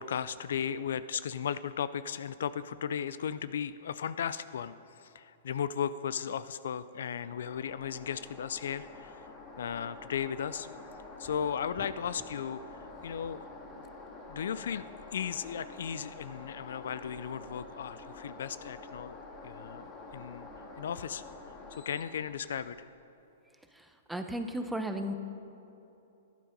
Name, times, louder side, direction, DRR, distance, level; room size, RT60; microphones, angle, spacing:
voice 1, 0.0-9.2 9.6-10.7 11.2-12.6 13.0-13.5 14.3-19.2 19.4-20.5 20.8-21.2 21.7-22.9, left 8 dB, 70° left, 15 dB, 0.4 m, -36 dB
sound 1, 7.2-22.7, left 2 dB, 25° left, 1.9 m, -48 dB
voice 2, 23.7-25.1, right 1 dB, 5° right, 6 dB, 0.8 m, -35 dB
11.5 x 10.5 x 5.2 m, 3.0 s
hypercardioid pair, 125°, 0 cm